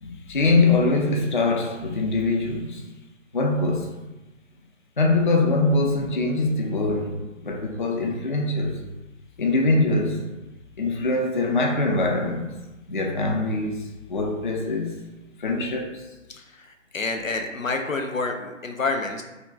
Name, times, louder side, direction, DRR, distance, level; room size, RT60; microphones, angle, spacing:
voice 1, 0.0-2.8 3.3-3.9 5.0-8.8 9.4-10.3 10.8-12.5 12.9-15.0 15.4-16.1, left 2 dB, 40° left, 1 dB, 0.4 m, -23 dB
voice 2, 16.3-19.2, left 3 dB, 90° left, 4 dB, 0.7 m, -28 dB
3.6 x 2.3 x 3.8 m, 1.0 s
figure-of-eight pair, 150°, 38 cm